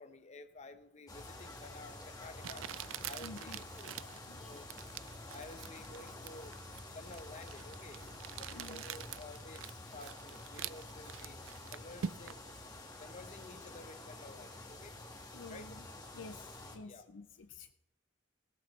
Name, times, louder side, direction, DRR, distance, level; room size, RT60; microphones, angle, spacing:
voice 1, 0.0-2.6 3.0-4.7 5.3-6.6 6.9-8.0 8.4-11.4 11.7-12.4 13.0-14.9 15.5-15.6 16.8-17.1, left 3 dB, 35° left, 10 dB, 0.8 m, -52 dB
sound 1, 1.1-16.8, left 2 dB, 20° left, 1.5 m, -49 dB
Crumpling crinkling, 1.5-1.6 2.4-12.5, right 9 dB, 80° right, 0.4 m, -46 dB
voice 2, 3.2-3.6 3.8-4.4 8.3-8.8 15.3-15.9 16.1-17.7, left 3 dB, 70° left, 9 dB, 0.5 m, -51 dB
16.5 x 12.0 x 3.2 m, 0.92 s
head